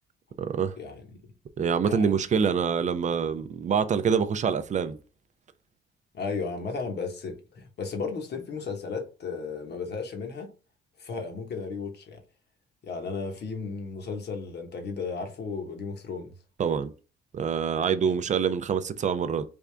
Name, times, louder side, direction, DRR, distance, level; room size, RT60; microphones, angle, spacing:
voice 1, 0.4-0.8 1.6-5.0 16.6-16.9 17.3-19.4, right 6 dB, 40° right, 0.4 m, -25 dB
voice 2, 1.8-2.2 6.1-10.5 11.0-12.2 12.8-16.3 18.0-18.2, left 4 dB, 55° left, 1.1 m, -34 dB
3.4 x 2.5 x 3.3 m
cardioid pair, 90°, 20 cm